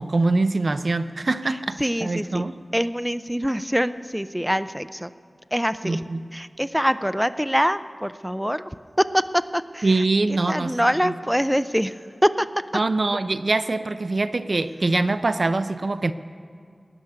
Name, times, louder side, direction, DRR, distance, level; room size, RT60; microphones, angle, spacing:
voice 1, 0.0-2.5 5.8-6.2 9.8-10.8 11.0-11.1 12.7-16.1, right 3 dB, 60° right, 12 dB, 0.5 m, -23 dB
voice 2, 1.8-2.4 2.7-5.1 5.5-6.0 6.3-8.7 9.0-9.2 9.5-9.9 10.5-11.9 12.2-12.5, equal, 5° right, 14 dB, 0.4 m, -24 dB
17.0 x 7.2 x 9.4 m, 2.3 s
wide cardioid pair, 55°, 0 cm